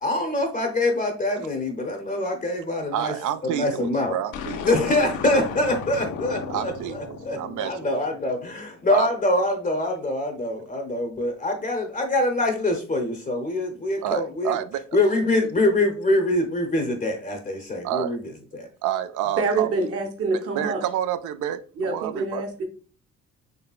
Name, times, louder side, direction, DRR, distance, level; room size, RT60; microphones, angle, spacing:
voice 1, 0.0-3.1 3.4-4.1 4.6-14.6 14.9-18.2 18.5-18.7, left 1 dB, 25° left, 0.6 m, -24 dB
voice 2, 2.9-4.7 6.5-8.0 8.9-9.1 14.0-14.8 17.8-18.2 18.8-19.7 20.3-22.4, right 11 dB, 75° right, 0.5 m, -29 dB
sound 1, 4.3-8.7, left 6 dB, 80° left, 0.6 m, -35 dB
voice 3, 19.4-20.8 21.8-22.6, right 3 dB, 50° right, 0.9 m, -26 dB
4.0 x 3.2 x 2.3 m
cardioid pair, 90°, 30 cm